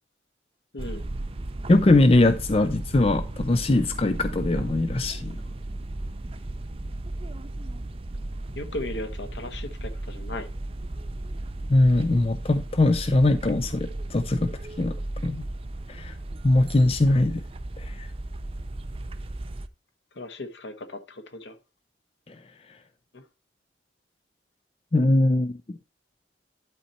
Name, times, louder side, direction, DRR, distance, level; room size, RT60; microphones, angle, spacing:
voice 1, 0.7-1.0 8.5-10.5 20.1-21.6 23.1-23.2, left 2 dB, 70° left, 1.3 m, -36 dB
sound 1, 0.8-19.7, right 1 dB, 30° right, 0.5 m, -35 dB
voice 2, 1.7-5.3 11.7-14.5 14.8-14.9 15.2-15.5 15.9-16.2 16.4-17.4 17.8-18.1 22.3-22.4 24.9-25.8, left 2 dB, 30° left, 0.5 m, -21 dB
11.5 x 4.2 x 4.3 m
head